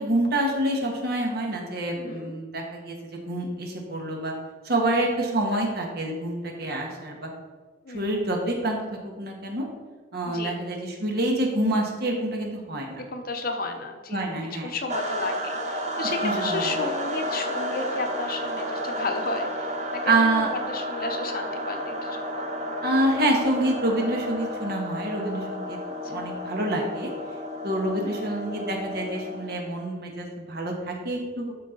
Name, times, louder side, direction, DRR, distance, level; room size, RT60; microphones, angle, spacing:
voice 1, 0.0-2.9 3.3-4.3 4.6-7.2 7.9-8.8 9.2-9.7 10.1-13.0 14.1-14.7 16.2-16.7 20.1-20.5 22.8-25.8 26.1-27.1 27.6-31.5, right 1 dB, 60° right, 0 dB, 1.6 m, -27 dB
voice 2, 2.0-2.4 5.5-5.7 7.8-8.2 10.3-10.6 13.0-14.3 14.6-22.8 26.0-26.4 28.0-28.3, left 3 dB, 55° left, 5 dB, 0.8 m, -33 dB
sound 1, 14.9-29.6, equal, 40° right, 1.2 m, -32 dB
12.0 x 4.4 x 3.9 m, 1.4 s
head